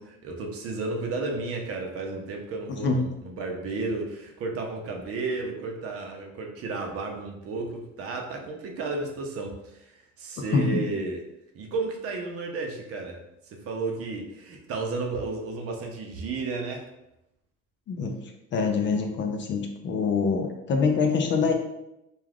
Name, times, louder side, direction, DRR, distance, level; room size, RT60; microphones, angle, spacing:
voice 1, 0.0-11.2 11.5-13.2 13.5-16.9, right 3 dB, 50° right, 2 dB, 0.6 m, -33 dB
voice 2, 10.5-10.8 17.9-18.2 18.5-21.5, left 5 dB, 40° left, 4 dB, 0.4 m, -25 dB
2.3 x 2.3 x 3.3 m, 0.86 s
cardioid pair, 120°, 29 cm